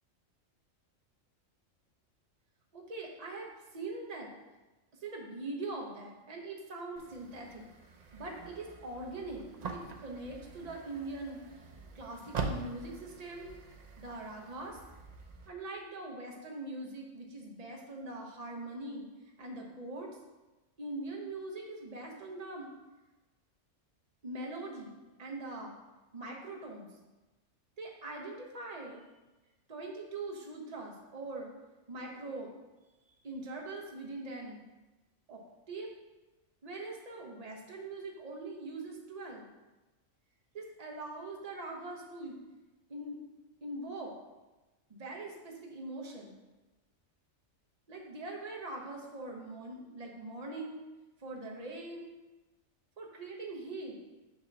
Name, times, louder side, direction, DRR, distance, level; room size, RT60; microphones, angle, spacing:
voice 1, 2.7-4.3 5.0-7.7 8.1-11.4 11.9-13.5 14.0-14.8 15.5-19.1 19.4-20.1 20.8-22.7 24.2-25.8 26.1-26.9 27.8-29.0 29.7-31.5 31.9-32.5 33.2-34.6 35.3-35.4 35.7-35.9 36.6-39.5 40.5-42.4 42.9-43.2 43.6-44.1 44.9-46.4 47.9-50.8 51.2-52.1 53.0-54.0, right 2 dB, 35° right, 0 dB, 0.9 m, -42 dB
Car Door with running engine, 7.0-15.5, right 4 dB, 55° right, 0.4 m, -44 dB
6.6 x 2.9 x 5.8 m, 1.1 s
omnidirectional pair, 1.4 m